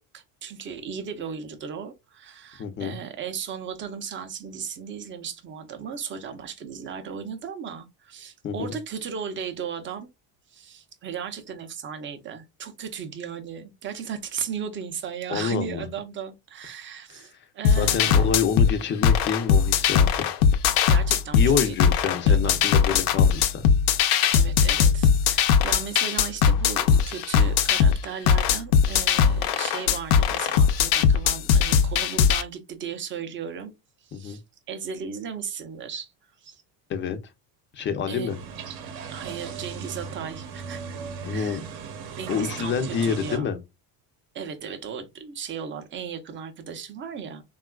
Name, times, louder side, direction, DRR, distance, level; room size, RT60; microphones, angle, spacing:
voice 1, 0.0-10.1 10.5-18.3 20.9-21.9 22.2-22.6 24.3-33.7 34.0-34.4 34.7-36.1 36.4-36.6 38.1-38.3 39.1-41.6 42.2-43.5 44.3-47.4, right 7 dB, 30° right, 0.5 m, -36 dB
voice 2, 2.6-3.0 8.4-8.7 15.3-15.9 17.1-17.4 17.7-20.3 21.3-23.6 34.1-34.4 36.9-37.2 37.7-38.4 41.2-41.6 42.3-43.6, left 6 dB, 30° left, 0.4 m, -27 dB
sound 1, 17.6-32.4, left 7 dB, 75° left, 0.6 m, -20 dB
sound 2, 38.3-43.4, right 6 dB, 55° right, 0.8 m, -37 dB
3.5 x 2.3 x 2.2 m
cardioid pair, 145°, 42 cm